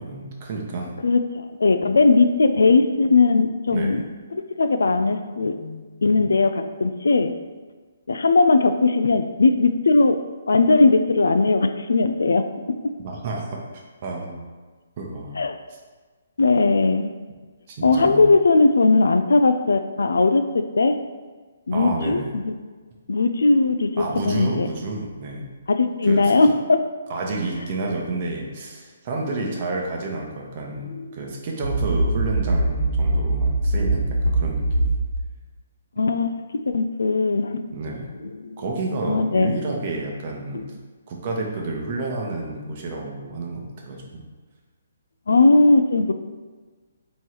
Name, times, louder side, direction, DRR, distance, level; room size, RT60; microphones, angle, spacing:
voice 1, 0.0-0.9 3.7-4.0 13.0-14.4 15.0-15.4 17.7-18.2 21.7-22.3 24.0-25.5 26.0-26.3 27.1-34.9 37.7-38.1 38.6-40.6 41.1-44.2, right 3 dB, 40° right, -1 dB, 0.9 m, -30 dB
voice 2, 1.0-4.0 4.3-7.3 8.1-10.2 10.5-12.8 15.4-15.6 16.4-17.1 17.8-21.0 21.7-22.5 23.1-24.7 25.7-26.9 30.9-31.2 36.0-36.3 36.7-37.6 38.2-38.6 39.0-39.5 40.5-40.7 45.3-46.1, left 3 dB, 75° left, 8 dB, 0.3 m, -19 dB
sound 1, 31.6-35.2, right 2 dB, 75° right, 0.4 m, -22 dB
3.7 x 3.1 x 4.5 m, 1.4 s
hypercardioid pair, 140°, 0 cm